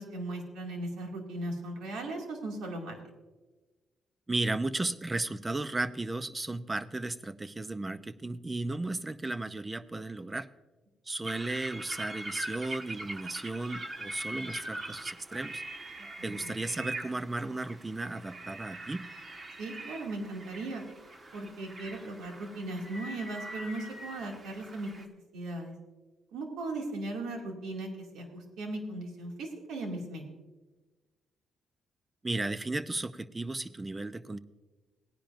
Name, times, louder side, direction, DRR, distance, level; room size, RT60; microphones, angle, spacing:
voice 1, 0.0-2.9 16.2-16.5 19.6-20.8 21.3-25.1 25.3-25.7 26.3-30.2, right 2 dB, 85° right, 1 dB, 2.3 m, -38 dB
voice 2, 4.3-10.5 11.1-15.6 16.2-19.1 32.2-34.4, right 2 dB, 20° right, 13 dB, 0.6 m, -35 dB
sound 1, 11.2-25.1, right 2 dB, 35° right, 1.4 m, -42 dB
17.5 x 10.0 x 2.6 m, 1.2 s
cardioid pair, 90°, 0 cm